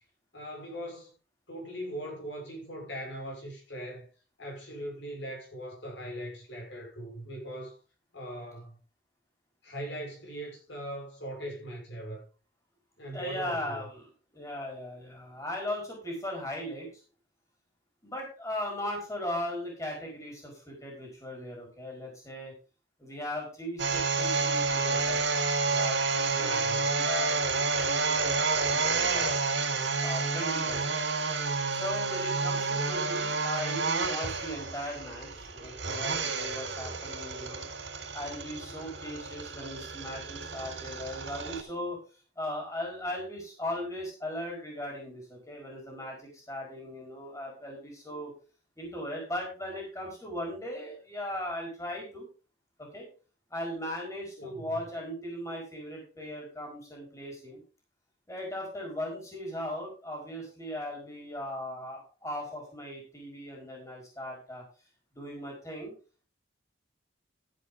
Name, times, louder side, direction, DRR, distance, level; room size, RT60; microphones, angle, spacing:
voice 1, 0.3-1.1 1.5-4.1 4.4-7.8 8.1-8.8 9.6-12.2 13.0-13.8 26.3-26.8 54.4-54.7, equal, 65° left, 6.1 m, -40 dB
voice 2, 13.1-14.1 14.3-16.9 18.0-22.5 23.0-25.2 25.6-27.4 27.7-29.3 30.0-30.8 31.7-37.6 38.1-42.0 42.4-48.3 48.8-52.3 52.8-53.1 53.5-57.6 58.3-64.6 65.1-65.9, left 1 dB, 15° left, 4.9 m, -38 dB
sound 1, 23.8-41.6, right 4 dB, 65° right, 3.8 m, -30 dB
14.0 x 8.1 x 3.8 m
head